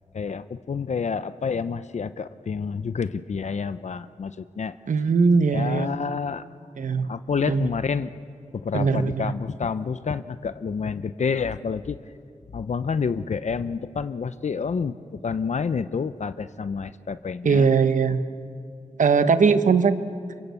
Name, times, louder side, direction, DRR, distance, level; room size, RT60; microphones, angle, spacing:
voice 1, 0.1-4.8 5.5-6.4 7.1-8.1 8.5-12.0 12.5-17.7, left 5 dB, 65° left, 13 dB, 0.7 m, -29 dB
voice 2, 4.9-5.9 6.8-7.1 7.5-7.7 8.7-9.3 17.4-18.2 19.0-20.0, right 5 dB, 80° right, 10 dB, 1.1 m, -20 dB
28.0 x 23.0 x 8.3 m, 2.4 s
wide cardioid pair, 70°, 13 cm